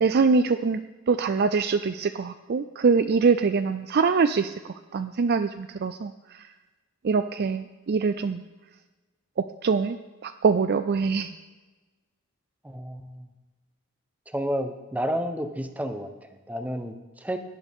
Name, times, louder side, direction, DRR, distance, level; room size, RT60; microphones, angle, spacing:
voice 1, 0.0-0.8 1.1-4.6 4.9-6.1 7.0-8.4 9.4-10.0 10.2-11.3, right 5 dB, 45° right, 10 dB, 0.4 m, -23 dB
voice 2, 12.6-13.3 14.3-17.4, equal, 5° right, 7 dB, 0.8 m, -31 dB
18.0 x 11.0 x 3.6 m, 1.2 s
head